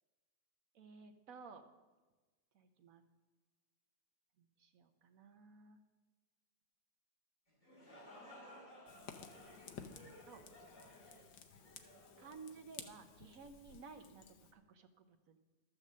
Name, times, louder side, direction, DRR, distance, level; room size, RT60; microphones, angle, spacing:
voice 1, 0.7-1.6 2.5-3.0 4.4-5.8 9.8-10.4 12.2-14.3 14.5-15.4, right 4 dB, 55° right, 7 dB, 1.1 m, -56 dB
sound 1, 7.5-13.2, left 1 dB, 45° left, 3.7 m, -58 dB
Fire, 8.9-14.5, left 7 dB, 75° left, 1.5 m, -55 dB
12.5 x 6.6 x 7.3 m, 1.3 s
omnidirectional pair, 2.0 m